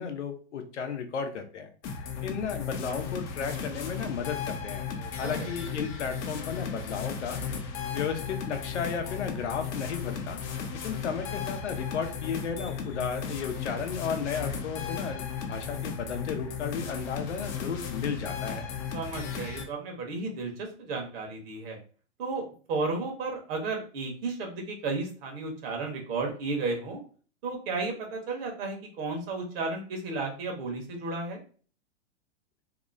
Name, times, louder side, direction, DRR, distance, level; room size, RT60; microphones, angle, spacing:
voice 1, 0.0-1.7 2.2-4.9 5.2-7.4 7.9-10.4 10.8-18.7, left 6 dB, 90° left, 6 dB, 0.6 m, -34 dB
sound 1, 1.8-19.7, left 6 dB, 35° left, 0.5 m, -35 dB
voice 2, 5.0-5.5 18.9-21.8 22.2-27.0 27.4-31.4, right 3 dB, 55° right, 2 dB, 1.1 m, -33 dB
2.8 x 2.0 x 2.5 m, 0.41 s
hypercardioid pair, 115°, 34 cm